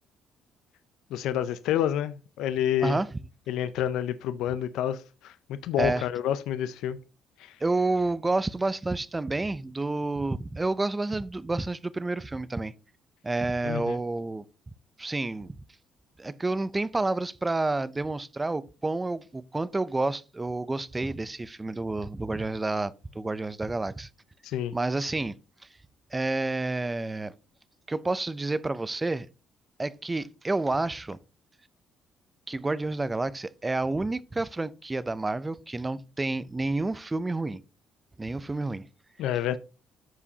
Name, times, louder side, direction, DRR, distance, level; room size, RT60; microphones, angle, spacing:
voice 1, 1.1-3.0 3.5-7.0 7.4-7.6 13.6-14.0 24.4-24.8 39.2-39.6, left 10 dB, 85° left, 0.4 m, -29 dB
voice 2, 7.6-12.7 13.2-14.4 15.0-15.5 16.2-24.1 24.7-25.3 26.1-27.3 27.9-29.3 29.8-31.2 32.5-37.6 38.2-38.9, right 2 dB, 15° right, 0.4 m, -29 dB
13.5 x 4.8 x 2.8 m
cardioid pair, 120°, 0 cm